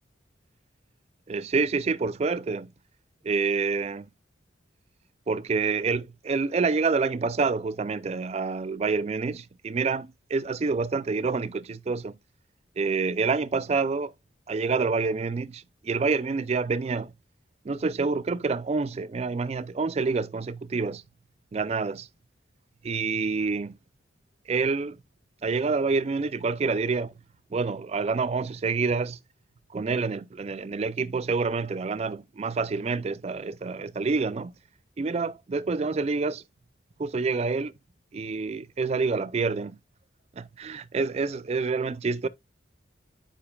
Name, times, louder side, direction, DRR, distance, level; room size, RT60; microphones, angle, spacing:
voice 1, 1.3-2.7 3.2-4.1 5.3-12.1 12.8-14.1 14.5-17.1 17.6-21.0 21.5-22.1 22.8-23.8 24.5-25.0 25.4-27.1 27.5-29.2 29.7-34.5 35.0-36.4 37.0-37.7 38.1-39.8 40.4-42.3, right 4 dB, 35° right, 0.3 m, -27 dB
8.7 x 5.1 x 2.3 m
head